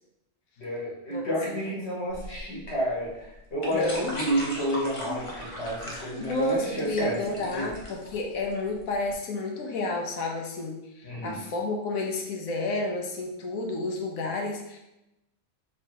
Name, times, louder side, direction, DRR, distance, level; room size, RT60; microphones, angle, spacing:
voice 1, 0.6-7.7 11.0-11.4, equal, 50° left, -5 dB, 1.4 m, -30 dB
sound 1, 2.1-9.1, equal, 30° left, 0.7 m, -39 dB
voice 2, 3.7-4.1 5.1-5.2 6.2-14.8, left 2 dB, 75° left, 1 dB, 1.1 m, -31 dB
3.2 x 3.1 x 4.5 m, 0.90 s
omnidirectional pair, 1.5 m